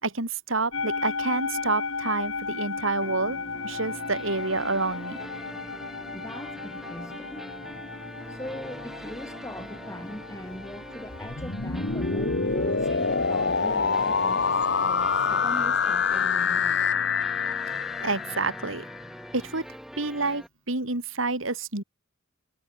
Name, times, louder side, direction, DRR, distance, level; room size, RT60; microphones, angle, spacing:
voice 1, 0.0-3.4 3.6-5.2 17.7-18.8 19.3-19.7 20.0-21.8, right 3 dB, 80° right, 4.1 m, -28 dB
sound 1, 0.7-16.9, left 4 dB, 80° left, 3.7 m, -37 dB
sound 2, 3.0-20.5, equal, ahead, 3.6 m, -43 dB
voice 2, 6.1-7.8 8.3-17.1 17.3-18.1 19.0-19.3, left 1 dB, 15° left, 7.2 m, -41 dB
sound 3, 11.1-19.0, left 5 dB, 60° left, 1.7 m, -26 dB
head